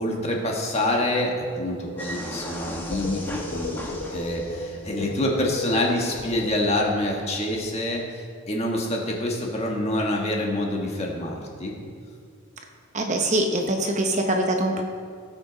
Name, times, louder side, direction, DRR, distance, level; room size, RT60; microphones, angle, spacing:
voice 1, 0.0-3.8 4.1-11.7, left 1 dB, 30° left, -1 dB, 1.5 m, -26 dB
sound 1, 2.0-5.5 5.7-7.7, equal, 10° left, 1.0 m, -37 dB
sound 2, 2.9-7.3, left 2 dB, 50° left, 0.8 m, -35 dB
voice 2, 12.9-14.8, right 1 dB, 35° right, 3 dB, 0.8 m, -23 dB
18.5 x 6.2 x 4.0 m, 2.2 s
head